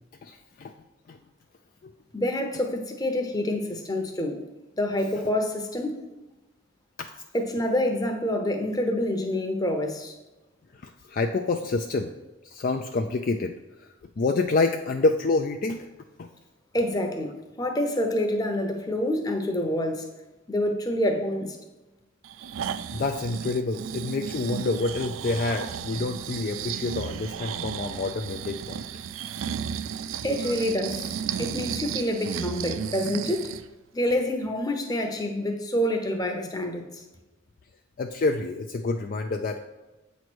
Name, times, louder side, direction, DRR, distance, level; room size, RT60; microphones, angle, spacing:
voice 1, 0.2-0.7 1.1-1.2 1.8-1.9 10.8-12.1 12.4-13.5 14.2-15.9 16.2-16.3 22.9-28.9 38.0-39.6, left 3 dB, 45° left, 5 dB, 0.3 m, -27 dB
voice 2, 2.1-4.5 4.8-6.0 7.3-10.1 16.7-20.1 20.5-21.6 30.2-33.5 33.9-37.0, left 1 dB, 20° left, 4 dB, 0.8 m, -27 dB
Breathing, 22.2-33.7 34.1-34.2, right 7 dB, 85° right, 0.4 m, -34 dB
8.0 x 3.1 x 6.1 m, 1.1 s
head